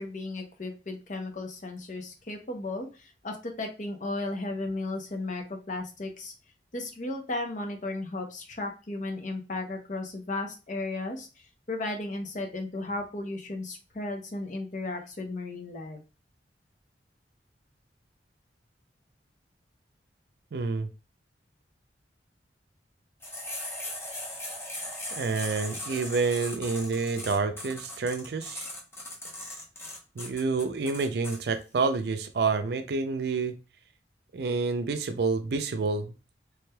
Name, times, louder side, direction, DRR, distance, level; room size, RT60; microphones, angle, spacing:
voice 1, 0.0-6.3 6.7-11.3 11.7-16.0, left 2 dB, 45° left, 3 dB, 0.7 m, -35 dB
voice 2, 20.5-20.9 25.1-28.6 30.2-33.6 34.3-36.1, right 4 dB, 65° right, 8 dB, 0.4 m, -28 dB
sound 1, 23.2-31.4, left 1 dB, 15° left, 0.8 m, -38 dB
3.3 x 3.2 x 2.2 m, 0.31 s
head